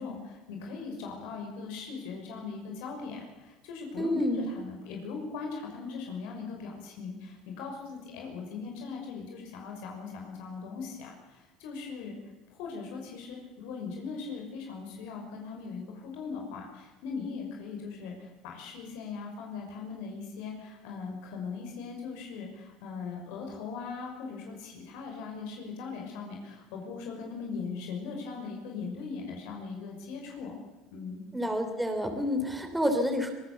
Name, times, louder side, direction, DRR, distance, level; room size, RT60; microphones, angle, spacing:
voice 1, 0.0-12.2 12.5-30.6 30.9-31.2, left 5 dB, 80° left, 1 dB, 6.0 m, -39 dB
voice 2, 4.0-4.5 31.3-33.3, equal, 5° right, 5 dB, 3.2 m, -29 dB
25.0 x 18.5 x 7.0 m, 1.2 s
supercardioid pair, 115°, 0 cm